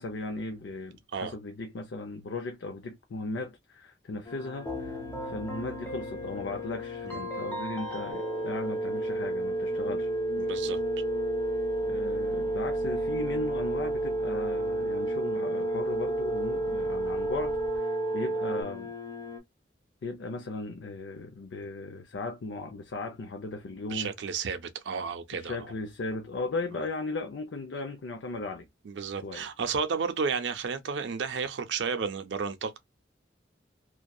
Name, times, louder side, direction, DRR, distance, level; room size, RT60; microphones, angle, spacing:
voice 1, 0.0-10.1 11.8-18.9 20.0-24.1 25.3-28.7 29.2-29.5, left 3 dB, 80° left, 0.5 m, -37 dB
sound 1, 4.2-19.4, left 6 dB, 25° left, 0.7 m, -41 dB
Keyboard (musical), 4.7-9.6, equal, 10° left, 1.1 m, -40 dB
sound 2, 8.1-18.6, right 2 dB, 10° right, 0.7 m, -30 dB
voice 2, 10.4-10.8 23.9-25.6 28.9-32.8, right 5 dB, 80° right, 0.5 m, -32 dB
2.6 x 2.2 x 2.2 m
head